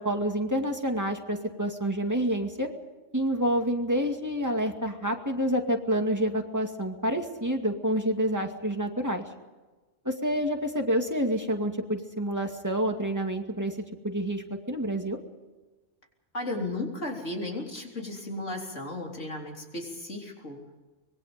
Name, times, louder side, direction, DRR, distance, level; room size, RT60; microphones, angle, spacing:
voice 1, 0.0-2.7 3.1-9.2 10.0-13.7 14.0-15.2, equal, 15° right, 3 dB, 2.3 m, -28 dB
voice 2, 16.3-20.6, left 2 dB, 80° left, 0 dB, 4.1 m, -35 dB
25.0 x 21.5 x 5.2 m, 1.2 s
omnidirectional pair, 1.3 m